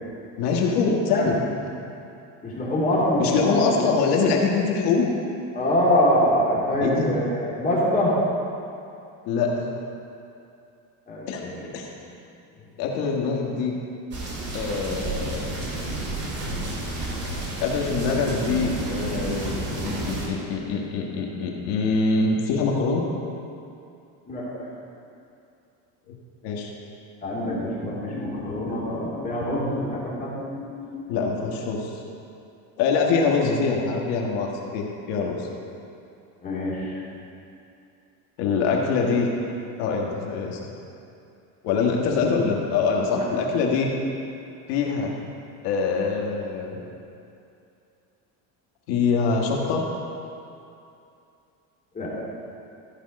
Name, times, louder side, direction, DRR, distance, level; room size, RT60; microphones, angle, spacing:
voice 1, 0.4-1.4 1.7-1.8 3.2-5.1 6.8-7.1 9.3-9.7 11.3-11.4 11.7-11.9 12.8-13.8 14.5-15.5 17.6-23.1 26.1-26.2 26.4-26.7 31.1-31.9 32.8-35.5 38.4-39.3 39.8-40.6 41.6-43.9 44.7-45.2 45.6-46.8 48.9-49.8, left 4 dB, 70° left, 0 dB, 1.8 m, -24 dB
voice 2, 2.4-3.6 5.5-8.2 11.1-11.7 12.1-12.2 24.3-24.5 27.2-31.1 36.4-37.2 43.2-43.3 51.9-52.1, left 1 dB, 20° left, -6 dB, 2.6 m, -25 dB
sound 1, 14.1-20.3, right 1 dB, 35° right, 2.2 m, -30 dB
14.0 x 5.4 x 5.3 m, 2.6 s
cardioid pair, 150°, 42 cm